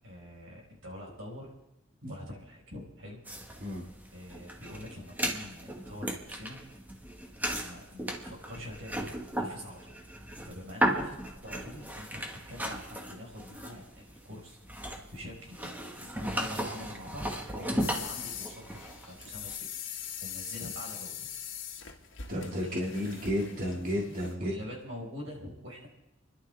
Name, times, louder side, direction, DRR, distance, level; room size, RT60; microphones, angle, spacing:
voice 1, 0.0-1.5 2.1-3.2 4.1-6.6 7.4-10.1 10.4-11.2 11.4-12.2 12.5-19.7 20.0-21.3 22.3-22.8 24.3-25.9, left 1 dB, 80° right, -2 dB, 4.8 m, -45 dB
sound 1, 3.3-19.6, right 1 dB, 10° right, 1.4 m, -36 dB
sound 2, 17.8-24.3, left 9 dB, 70° left, 1.6 m, -42 dB
voice 2, 22.3-24.5, equal, 45° right, -3 dB, 2.1 m, -32 dB
29.5 x 11.5 x 3.4 m, 0.91 s
head